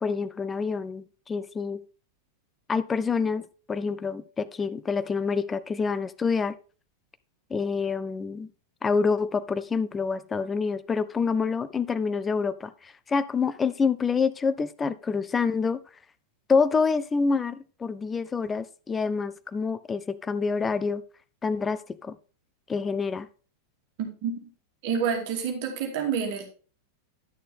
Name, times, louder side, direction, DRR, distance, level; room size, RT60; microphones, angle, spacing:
voice 1, 0.0-1.8 2.7-6.6 7.5-8.5 8.8-15.8 16.5-21.0 21.4-22.2 22.7-23.3, left 5 dB, 15° left, 0.5 m, -27 dB
voice 2, 24.0-24.4 24.8-26.4, right 6 dB, 50° right, 2.3 m, -28 dB
10.5 x 6.7 x 3.5 m
figure-of-eight pair, 90°, 0 cm